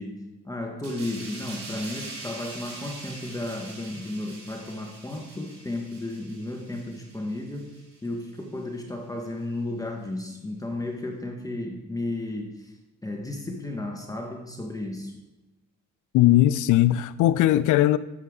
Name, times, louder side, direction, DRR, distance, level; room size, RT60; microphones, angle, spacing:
voice 1, 0.0-12.7 13.0-15.1, left 1 dB, 10° left, 1.4 m, -33 dB
sound 1, 0.8-8.0 8.4-8.6, right 2 dB, 55° right, 3.8 m, -43 dB
voice 2, 16.1-18.0, left 14 dB, 80° left, 0.5 m, -19 dB
11.5 x 7.8 x 3.8 m
cardioid pair, 90°, 30 cm